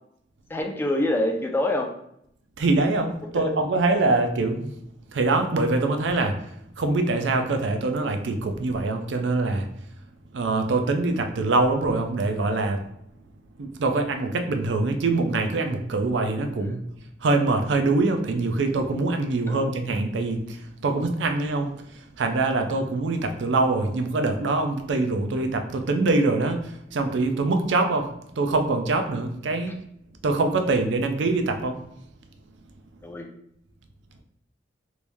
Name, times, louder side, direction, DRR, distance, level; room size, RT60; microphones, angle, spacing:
voice 1, 0.5-1.9 3.3-3.5 16.6-16.8 19.5-19.7 33.0-33.3, left 1 dB, 10° left, 3 dB, 0.3 m, -26 dB
voice 2, 2.6-4.7 5.1-6.4 6.8-9.7 10.3-12.8 13.6-16.8 17.2-28.1 28.4-29.8 30.2-31.8, right 3 dB, 80° right, 6 dB, 0.4 m, -24 dB
3.1 x 2.6 x 3.4 m, 0.75 s
head